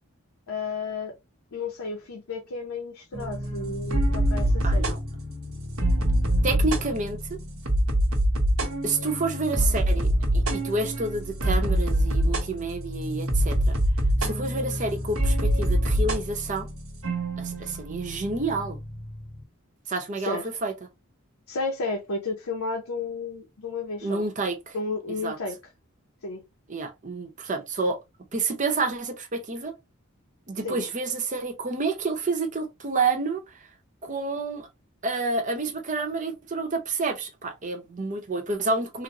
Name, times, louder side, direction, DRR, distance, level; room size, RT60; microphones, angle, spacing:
voice 1, 0.5-1.1 1.5-5.0 20.2-20.5 21.5-24.2 24.7-25.6 26.2-26.4 30.6-30.9, left 3 dB, 90° left, 0.7 m, -32 dB
sound 1, 3.1-19.4, equal, 80° right, 1.0 m, -25 dB
voice 2, 4.6-5.0 6.4-7.4 8.8-13.8 14.2-16.7 17.4-18.8 19.9-20.7 24.0-24.8 25.1-25.4 26.7-28.0 28.3-29.7 30.5-33.5 34.0-34.7 35.0-39.0, right 3 dB, 35° right, 0.7 m, -29 dB
3.8 x 2.0 x 2.9 m
head